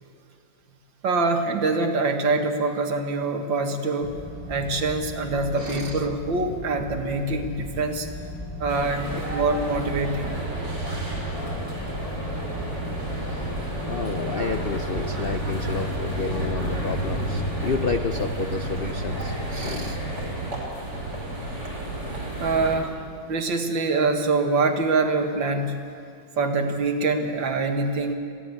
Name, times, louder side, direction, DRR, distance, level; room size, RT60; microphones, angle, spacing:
voice 1, 1.0-4.2 4.5-8.1 8.6-10.3 10.6-10.7 22.4-22.9 23.3-25.8 26.4-28.1, right 3 dB, 85° right, 4 dB, 2.4 m, -24 dB
sound 1, 4.0-17.9, left 2 dB, 15° left, 3.2 m, -37 dB
voice 2, 5.6-6.1 13.2-13.5 13.9-20.2, left 5 dB, 65° left, 7 dB, 0.5 m, -31 dB
sound 2, 8.7-22.8, right 1 dB, 65° right, 5.9 m, -30 dB
22.5 x 16.0 x 8.7 m, 2.5 s
omnidirectional pair, 2.0 m